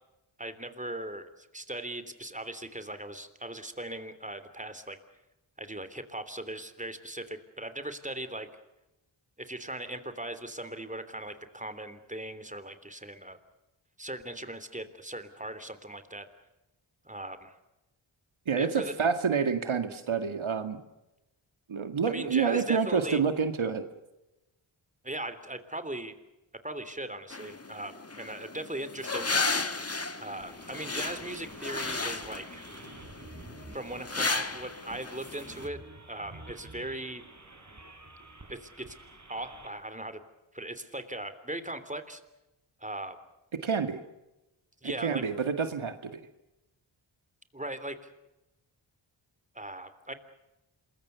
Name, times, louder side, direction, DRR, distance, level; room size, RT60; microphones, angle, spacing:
voice 1, 0.4-5.0 5.6-8.5 9.4-13.4 14.0-16.3 17.0-17.5 18.6-18.9 22.1-23.2 25.0-26.2 26.6-29.6 30.2-32.6 33.7-35.8 36.1-37.2 38.5-38.9 39.3-40.2 40.5-42.2 42.8-43.2 44.8-45.2 47.5-48.0 49.5-50.1, right 1 dB, 15° right, 11 dB, 3.2 m, -39 dB
voice 2, 18.5-20.8 21.7-23.8 43.6-44.0 44.8-46.2, right 6 dB, 75° right, 9 dB, 2.0 m, -28 dB
sound 1, 27.3-35.7, left 3 dB, 30° left, 1.7 m, -34 dB
sound 2, 30.4-39.7, right 2 dB, 35° right, 5.4 m, -50 dB
27.0 x 22.0 x 6.9 m, 0.96 s
cardioid pair, 50°, 48 cm